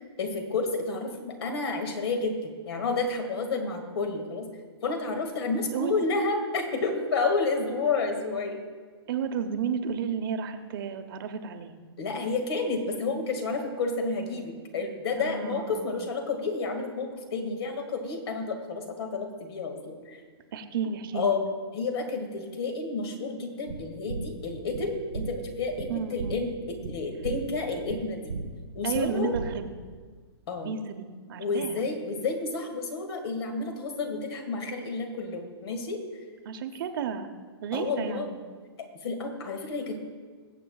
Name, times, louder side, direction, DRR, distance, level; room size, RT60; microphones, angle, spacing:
voice 1, 0.2-4.5 4.8-8.6 12.0-20.2 21.1-21.4 21.7-28.3 28.7-29.3 30.5-30.7 31.4-36.0 37.7-38.3 39.0-40.0, left 3 dB, 65° left, 5 dB, 2.0 m, -30 dB
voice 2, 9.1-11.8 15.2-16.0 20.5-21.4 25.9-26.4 28.8-29.7 30.6-31.8 36.4-37.3 37.6-38.4, right 7 dB, 55° right, 7 dB, 0.9 m, -32 dB
sound 1, 23.7-30.0, right 4 dB, 90° right, 0.9 m, -37 dB
21.0 x 7.8 x 2.4 m, 1.5 s
hypercardioid pair, 145°, 14 cm